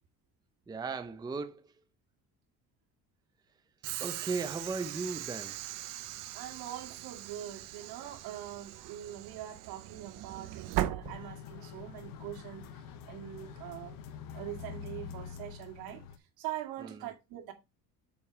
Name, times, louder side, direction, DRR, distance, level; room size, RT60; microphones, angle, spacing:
voice 1, 0.7-1.7 4.0-5.6 16.8-17.1, right 4 dB, 10° right, 0.6 m, -37 dB
Train / Sliding door, 3.8-11.8, right 13 dB, 60° right, 0.8 m, -39 dB
voice 2, 6.3-12.7 13.1-14.0 14.3-16.0 16.4-17.5, right 12 dB, 75° right, 2.2 m, -43 dB
sound 1, 11.0-16.2, left 7 dB, 65° left, 1.2 m, -46 dB
7.1 x 5.2 x 4.8 m
cardioid pair, 140°, 36 cm